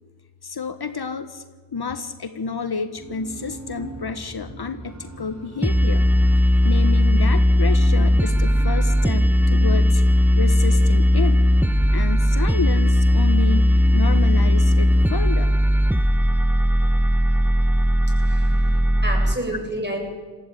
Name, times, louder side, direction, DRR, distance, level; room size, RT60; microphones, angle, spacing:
voice 1, 0.4-1.4 1.7-6.1 6.6-10.0 10.4-11.4 11.9-13.7 13.9-15.5 18.4-19.0, left 5 dB, 60° left, 10 dB, 1.5 m, -30 dB
sound 1, 3.0-15.3, right 2 dB, 40° right, 4.6 m, -40 dB
sound 2, 5.6-19.3, equal, 5° right, 1.0 m, -17 dB
voice 2, 18.2-20.0, right 1 dB, 25° right, 1 dB, 7.9 m, -30 dB
19.0 x 15.5 x 9.2 m, 1.5 s
cardioid pair, 50°, 43 cm